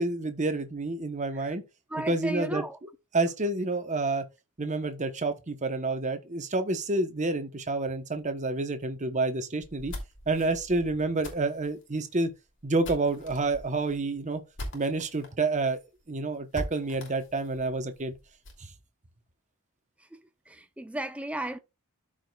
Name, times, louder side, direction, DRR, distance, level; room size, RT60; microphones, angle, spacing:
voice 1, 0.0-1.6 2.1-2.9 3.1-4.2 4.6-9.9 10.3-12.3 12.6-14.4 14.7-15.8 16.1-18.1, right 2 dB, 35° right, 1.0 m, -29 dB
voice 2, 1.9-2.8 20.1-20.2 20.5-21.6, right 1 dB, 5° right, 0.6 m, -35 dB
sound 1, 9.6-15.3 15.7-15.8 16.0-16.1 16.5-18.7, left 1 dB, 55° left, 2.9 m, -42 dB
13.5 x 5.0 x 2.3 m
head